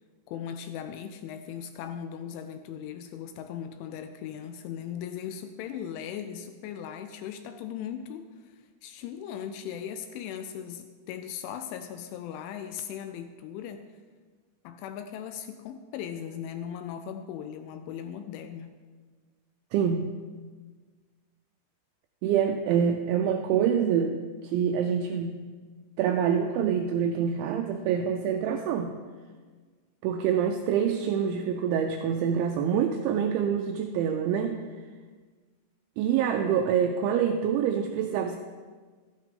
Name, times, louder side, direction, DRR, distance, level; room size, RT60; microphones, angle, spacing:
voice 1, 0.3-13.9 14.6-18.7, left 9 dB, 85° left, 8 dB, 2.8 m, -38 dB
voice 2, 19.7-20.1 22.2-24.2 24.5-25.4 26.0-29.0 30.0-34.6 36.0-38.4, right 8 dB, 85° right, 4 dB, 2.7 m, -26 dB
12.5 x 10.5 x 3.7 m, 1.5 s
omnidirectional pair, 5.8 m